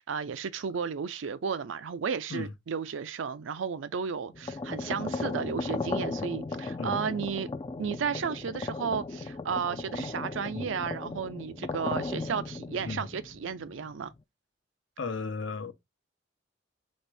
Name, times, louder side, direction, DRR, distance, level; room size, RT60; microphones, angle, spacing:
voice 1, 0.0-7.5 7.8-14.1, right 6 dB, 75° right, 0.4 m, -33 dB
sound 1, 4.3-14.1, left 3 dB, 25° left, 0.3 m, -36 dB
voice 2, 12.8-13.1 15.0-15.7, left 4 dB, 70° left, 0.8 m, -35 dB
4.3 x 3.4 x 3.3 m
head